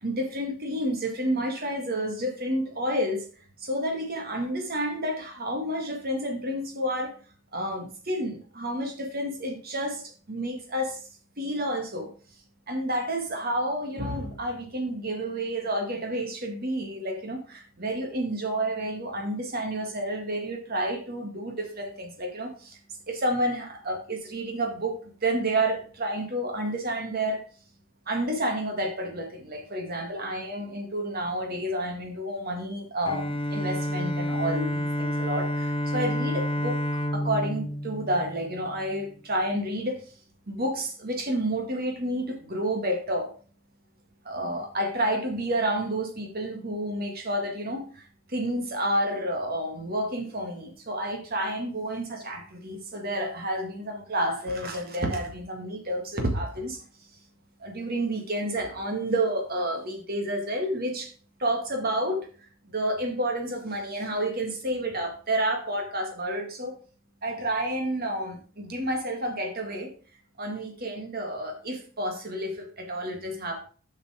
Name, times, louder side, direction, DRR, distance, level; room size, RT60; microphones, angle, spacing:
voice 1, 0.0-3.2 3.6-7.1 7.5-11.0 11.4-12.1 12.7-22.8 23.1-27.4 28.1-40.0 40.5-43.3 44.3-56.8 57.6-61.1 61.4-66.7 67.2-69.9 70.4-73.6, right 1 dB, 45° right, 3 dB, 1.9 m, -30 dB
Bowed string instrument, 33.1-38.9, equal, 25° left, 0.5 m, -29 dB
7.2 x 5.6 x 4.9 m, 0.41 s
head